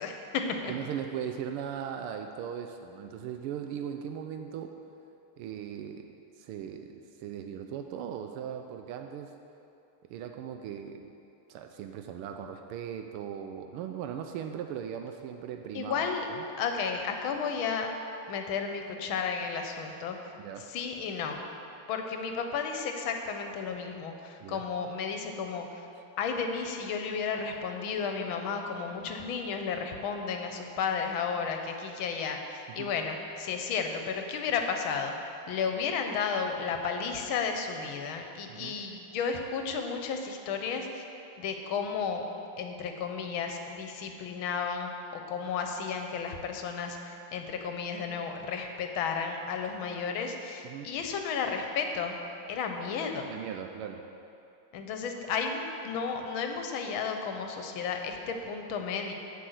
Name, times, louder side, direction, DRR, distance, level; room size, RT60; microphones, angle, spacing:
voice 1, 0.0-0.7 15.7-16.3 16.6-17.9 18.3-20.2 20.7-21.4 21.9-25.7 26.2-35.1 35.5-41.0 41.4-42.2 42.6-52.2 52.5-53.3 54.7-59.1, left 5 dB, 70° left, 4 dB, 1.6 m, -33 dB
voice 2, 0.7-4.8 5.4-9.3 10.1-11.1 11.5-16.5 20.4-20.7 24.4-24.6 32.8-32.9 38.5-38.8 50.6-50.9 53.3-54.1, right 8 dB, 85° right, 5 dB, 1.5 m, -39 dB
7.9 x 6.1 x 7.9 m, 2.7 s
omnidirectional pair, 2.4 m